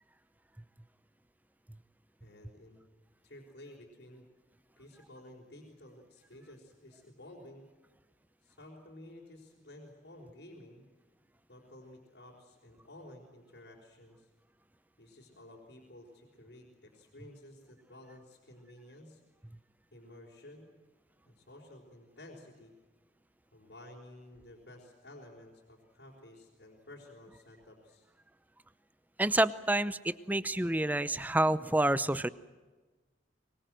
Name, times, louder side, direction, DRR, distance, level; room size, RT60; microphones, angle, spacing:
voice 1, 2.2-2.8 3.2-4.2 4.8-7.7 8.4-10.8 11.5-14.3 15.0-19.2 19.9-20.7 21.2-22.7 23.5-28.1, left 1 dB, 75° left, -4 dB, 4.7 m, -53 dB
voice 2, 29.2-32.3, right 1 dB, 10° right, 16 dB, 0.7 m, -28 dB
24.5 x 21.5 x 7.7 m, 1.3 s
head